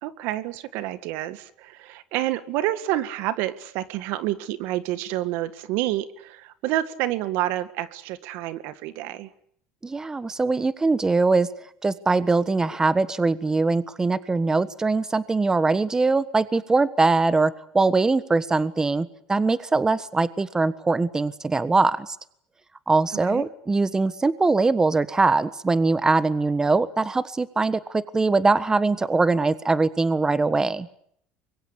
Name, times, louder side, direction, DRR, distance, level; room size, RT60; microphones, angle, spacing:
voice 1, 0.0-9.3 23.3-23.5, right 14 dB, 75° right, 13 dB, 1.8 m, -28 dB
voice 2, 9.8-11.5 11.8-22.2 22.9-30.9, right 3 dB, 15° right, 14 dB, 1.4 m, -22 dB
24.5 x 23.0 x 8.3 m, 0.68 s
supercardioid pair, 105°, 4 cm